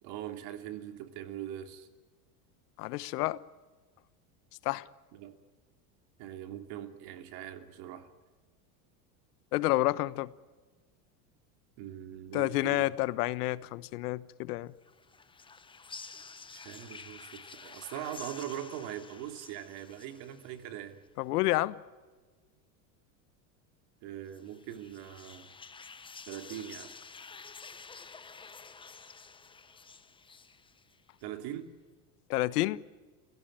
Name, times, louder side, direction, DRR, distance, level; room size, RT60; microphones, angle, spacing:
voice 1, 0.0-1.9 5.1-5.4 6.2-8.1 11.8-12.9 16.5-21.0 24.0-25.5 26.3-26.9 31.2-31.7, right 11 dB, 55° right, 3.0 m, -41 dB
voice 2, 2.8-3.4 4.6-4.8 9.5-10.3 12.3-14.7 21.2-21.8 32.3-32.8, left 18 dB, 80° left, 1.1 m, -29 dB
sound 1, 14.8-20.8 24.3-31.2, left 5 dB, 10° left, 0.9 m, -50 dB
29.0 x 16.5 x 8.9 m
supercardioid pair, 135°, 46 cm